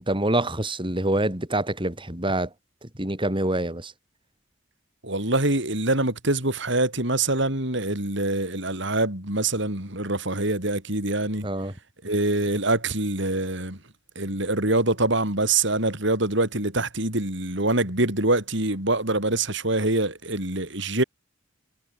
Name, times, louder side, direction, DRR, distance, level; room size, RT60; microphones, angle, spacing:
voice 1, 0.0-2.5 3.0-3.9 11.4-11.7, right 1 dB, 25° right, 6.3 m, -26 dB
voice 2, 5.0-11.5 12.0-13.8 14.2-21.0, right 2 dB, 65° right, 7.7 m, -24 dB
head